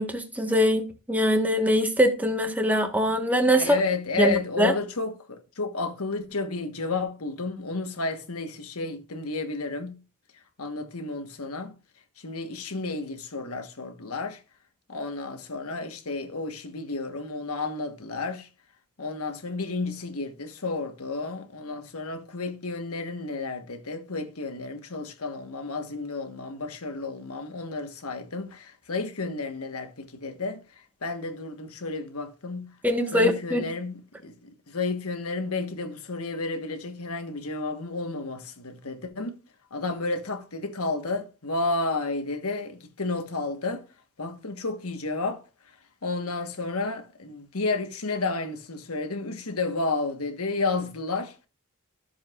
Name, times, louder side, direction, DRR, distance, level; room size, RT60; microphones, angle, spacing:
voice 1, 0.0-3.8 4.2-4.7 32.8-33.6, equal, 5° right, 1.3 m, -23 dB
voice 2, 3.6-10.0 10.6-11.7 12.2-14.4 14.9-18.5 19.0-32.7 33.1-33.9 34.2-39.4 39.7-43.9 44.2-45.4 46.0-51.5, left 3 dB, 75° left, 1.4 m, -31 dB
13.5 x 7.2 x 2.4 m
head